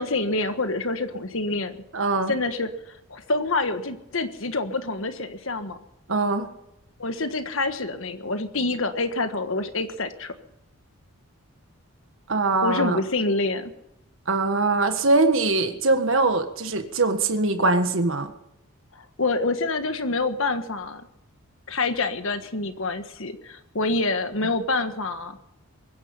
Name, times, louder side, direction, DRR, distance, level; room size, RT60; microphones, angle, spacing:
voice 1, 0.0-1.8 2.3-2.7 3.1-5.8 7.0-10.3 12.6-13.7 18.9-21.0 21.7-25.4, left 3 dB, 60° left, 9 dB, 1.5 m, -27 dB
voice 2, 1.9-2.3 6.1-6.5 12.3-13.0 14.3-18.3, right 3 dB, 60° right, 7 dB, 1.6 m, -22 dB
23.0 x 10.5 x 5.6 m, 0.84 s
head